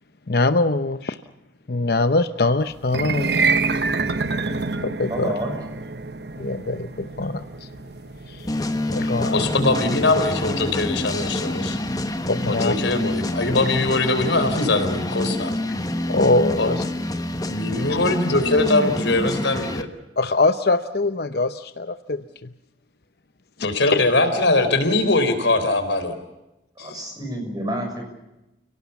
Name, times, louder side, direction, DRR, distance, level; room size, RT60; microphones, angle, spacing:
voice 1, 0.3-1.2 1.7-3.4 4.8-5.3 6.4-7.7 8.3-8.6 8.9-9.5 12.3-12.7 16.1-16.8 17.9-18.0 20.2-22.5 26.8-27.0, left 2 dB, 55° left, 10 dB, 0.8 m, -23 dB
sound 1, 2.8-13.2, right 4 dB, 65° right, 1.2 m, -28 dB
voice 2, 5.1-5.5 26.8-28.0, right 1 dB, 20° right, 3 dB, 6.7 m, -29 dB
sound 2, 8.5-19.8, left 1 dB, 20° left, 1.3 m, -27 dB
voice 3, 9.3-11.8 12.5-15.5 16.6-16.7 17.5-19.9 23.6-26.2, left 2 dB, 80° left, 8 dB, 4.0 m, -21 dB
30.0 x 18.0 x 7.1 m, 0.98 s
head